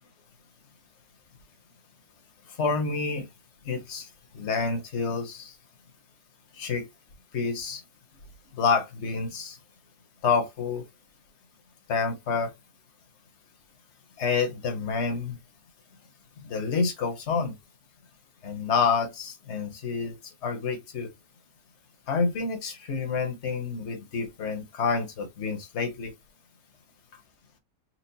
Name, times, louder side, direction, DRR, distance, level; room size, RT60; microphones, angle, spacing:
voice 1, 2.6-3.3 3.7-4.1 4.3-5.5 6.6-6.9 7.3-7.8 8.6-9.6 10.2-10.8 11.9-12.5 14.2-15.4 16.4-17.6 18.4-20.1 20.4-21.1 22.1-26.1, left 5 dB, 45° left, 1.1 m, -28 dB
4.5 x 2.4 x 2.8 m
omnidirectional pair, 1.9 m